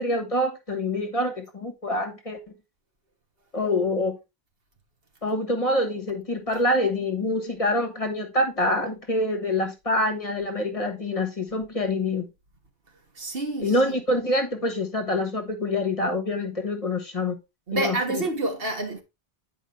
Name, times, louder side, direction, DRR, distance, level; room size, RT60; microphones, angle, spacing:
voice 1, 0.0-2.4 3.5-4.1 5.2-12.3 13.6-17.4 17.7-18.2, left 1 dB, 35° left, 1.3 m, -26 dB
voice 2, 13.1-14.0 17.7-19.0, right 2 dB, 65° right, 1.7 m, -28 dB
9.2 x 4.8 x 3.2 m
omnidirectional pair, 1.0 m